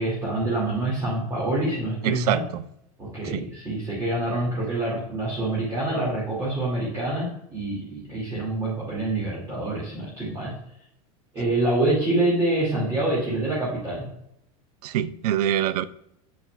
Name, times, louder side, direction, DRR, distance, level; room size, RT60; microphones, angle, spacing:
voice 1, 0.0-2.4 3.0-10.5 11.3-14.1, right 2 dB, 20° right, 2.5 m, -26 dB
voice 2, 2.0-2.4 3.3-3.5 14.8-15.8, right 11 dB, 80° right, 0.4 m, -24 dB
7.6 x 6.8 x 2.4 m
supercardioid pair, 140°, 19 cm